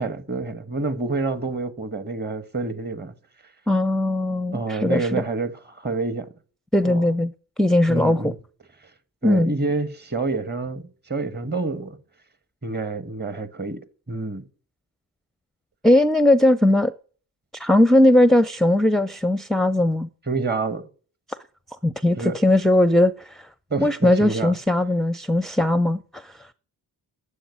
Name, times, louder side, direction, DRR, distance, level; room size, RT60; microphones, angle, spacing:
voice 1, 0.0-3.1 4.5-6.3 6.8-7.0 7.9-8.4 8.8-8.9 9.2-12.0 12.6-13.8 14.1-14.4 20.3-20.9 22.2-22.4 23.7-24.6, right 3 dB, 25° right, 1.3 m, -28 dB
voice 2, 3.7-5.2 6.7-7.3 7.6-8.3 9.2-9.5 15.8-16.9 17.5-20.1 21.8-23.5 23.8-26.3, left 1 dB, ahead, 0.6 m, -19 dB
11.5 x 7.7 x 9.7 m
cardioid pair, 80°, 39 cm